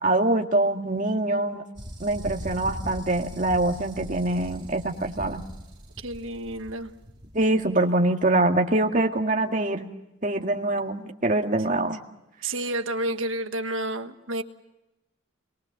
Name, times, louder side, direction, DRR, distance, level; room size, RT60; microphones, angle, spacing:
voice 1, 0.0-1.6 2.0-5.4 7.3-9.9 10.2-12.0, right 2 dB, 40° right, 3 dB, 1.9 m, -24 dB
sound 1, 1.8-7.6, equal, 25° right, 2.8 m, -40 dB
voice 2, 6.0-6.9 12.4-14.4, right 1 dB, 75° right, 7 dB, 1.4 m, -30 dB
25.5 x 22.5 x 6.6 m, 0.95 s
head